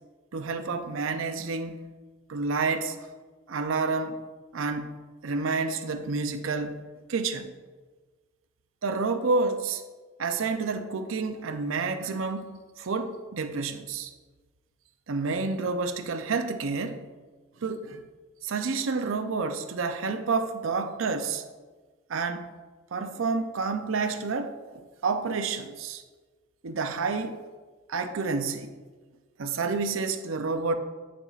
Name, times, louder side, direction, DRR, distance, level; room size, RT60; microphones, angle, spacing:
voice 1, 0.3-1.9 2.3-3.0 3.5-4.2 4.5-4.9 5.2-6.8 7.1-7.5 8.8-9.8 10.2-14.1 15.1-17.0 17.6-18.0 18.4-21.4 22.1-22.5 22.9-26.0 26.6-27.4 27.9-28.7 29.4-30.8, right 4 dB, 85° right, 0.5 m, -29 dB
8.6 x 6.9 x 2.4 m
head